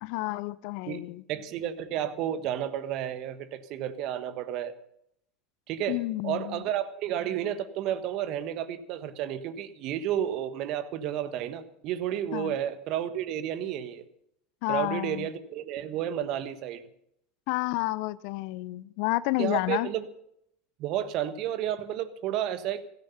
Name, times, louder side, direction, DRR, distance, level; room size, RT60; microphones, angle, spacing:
voice 1, 0.0-1.2 5.9-6.6 12.3-12.6 14.6-15.3 17.5-19.9, left 20 dB, 60° left, 19 dB, 0.6 m, -30 dB
voice 2, 1.3-4.7 5.7-6.0 6.2-14.0 14.7-16.8 19.4-20.1 20.8-22.8, right 10 dB, 55° right, 12 dB, 1.3 m, -31 dB
16.0 x 13.5 x 5.6 m, 0.75 s
hypercardioid pair, 80°, 0 cm